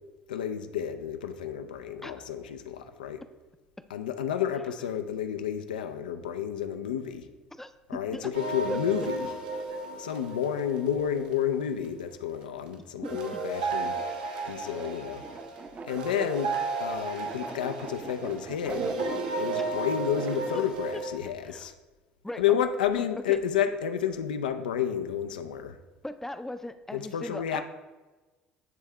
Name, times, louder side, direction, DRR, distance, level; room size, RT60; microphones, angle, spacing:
voice 1, 0.3-3.2 3.9-7.3 7.9-9.3 10.0-14.0 14.4-15.2 15.9-18.9 19.4-21.8 22.4-25.8 26.9-27.6, left 9 dB, 80° left, 8 dB, 0.4 m, -30 dB
voice 2, 7.6-8.3 8.7-8.8 13.0-13.4 20.5-20.6 21.5-21.7 22.2-22.4 23.3-23.4 26.0-27.6, left 1 dB, 10° left, 11 dB, 0.4 m, -38 dB
sound 1, 8.3-11.8 13.0-21.1, right 3 dB, 80° right, 0.8 m, -34 dB
sound 2, 13.8-20.7, right 4 dB, 35° right, 0.6 m, -44 dB
9.1 x 3.5 x 3.2 m, 1.2 s
hypercardioid pair, 60°, 5 cm